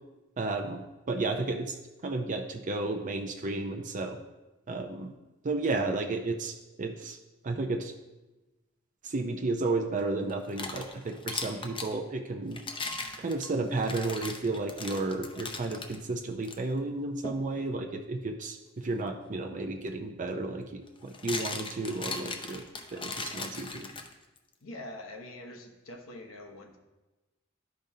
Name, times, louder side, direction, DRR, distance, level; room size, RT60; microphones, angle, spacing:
voice 1, 0.4-1.8 2.0-4.2 4.7-5.1 5.4-7.2 7.4-7.9 9.0-12.6 13.2-22.6 22.9-23.9, right 3 dB, 40° right, 3 dB, 0.5 m, -32 dB
sound 1, 10.3-11.9 12.5-16.0 16.4-16.6 17.2-17.5 19.6-19.7 20.9-24.4, left 4 dB, 25° left, 0.6 m, -38 dB
voice 2, 24.6-26.8, left 1 dB, 80° left, 2 dB, 0.9 m, -44 dB
11.5 x 5.2 x 2.7 m, 1.1 s
head